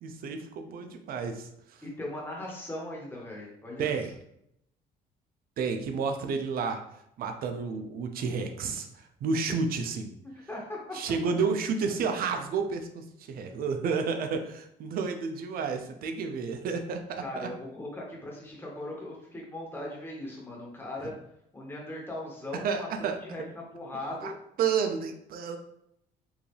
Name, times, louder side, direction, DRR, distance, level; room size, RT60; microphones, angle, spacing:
voice 1, 0.0-1.5 3.8-4.1 5.6-6.8 7.2-10.1 10.9-17.5 22.6-23.2 24.2-24.3 24.6-25.6, right 5 dB, 60° right, 5 dB, 0.6 m, -31 dB
voice 2, 1.8-4.0 10.2-10.8 17.2-21.1 21.5-24.3, left 1 dB, 15° left, -3 dB, 1.5 m, -39 dB
4.7 x 2.8 x 3.3 m, 0.75 s
cardioid pair, 110°, 17 cm